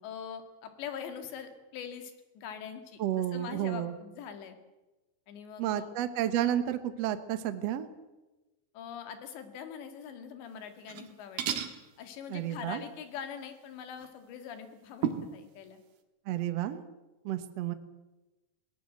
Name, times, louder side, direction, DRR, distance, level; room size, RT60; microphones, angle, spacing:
voice 1, 0.0-4.6 5.3-5.9 8.7-11.6 12.0-15.8, left 8 dB, 80° left, 7 dB, 4.3 m, -43 dB
voice 2, 3.0-3.9 5.6-7.9 12.3-12.8 16.3-16.8 17.2-17.7, right 11 dB, 85° right, 10 dB, 1.4 m, -31 dB
sound 1, 10.8-11.1 11.4-11.8 14.0-14.1 15.0-15.4, right 9 dB, 65° right, 3.0 m, -32 dB
21.0 x 18.5 x 7.9 m, 1.1 s
omnidirectional pair, 5.1 m